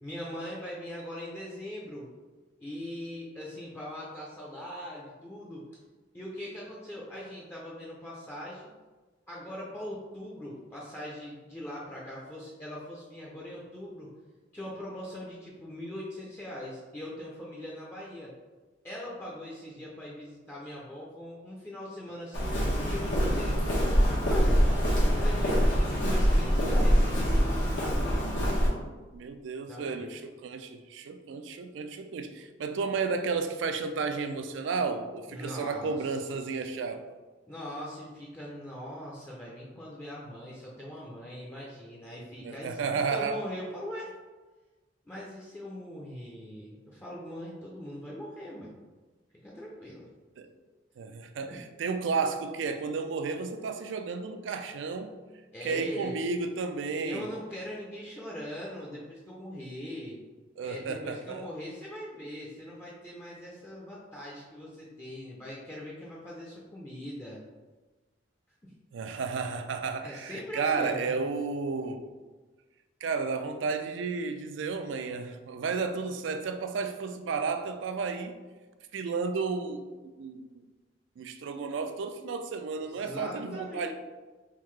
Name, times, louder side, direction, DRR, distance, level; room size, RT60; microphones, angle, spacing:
voice 1, 0.0-2.1 2.6-5.7 6.1-8.7 9.3-14.1 14.5-18.3 18.8-23.8 24.3-24.6 25.1-28.3 29.7-30.0 35.3-36.2 37.5-44.1 45.1-48.7 49.4-50.1 51.5-51.6 55.5-56.2 57.0-60.2 60.6-67.4 68.6-68.7 70.0-71.2 82.9-83.9, left 1 dB, 10° left, -5 dB, 0.5 m, -41 dB
Walk footsteps, 22.3-28.7, equal, 90° left, 1.1 m, -24 dB
voice 2, 29.1-37.0 42.4-43.4 50.4-50.5 51.0-55.1 55.6-57.3 60.6-61.5 68.9-72.1 73.0-78.4 78.9-80.6 81.2-83.9, right 4 dB, 75° right, 7 dB, 0.4 m, -32 dB
3.6 x 2.7 x 3.2 m, 1.3 s
head